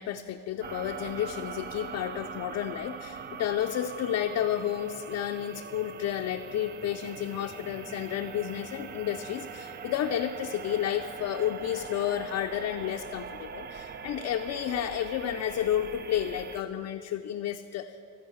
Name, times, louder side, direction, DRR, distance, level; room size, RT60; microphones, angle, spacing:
voice 1, 0.0-18.1, left 10 dB, 45° left, 4 dB, 0.5 m, -31 dB
sound 1, 0.6-16.6, right 6 dB, 30° right, 0.4 m, -42 dB
14.5 x 5.2 x 7.8 m, 2.5 s
cardioid pair, 105°, 38 cm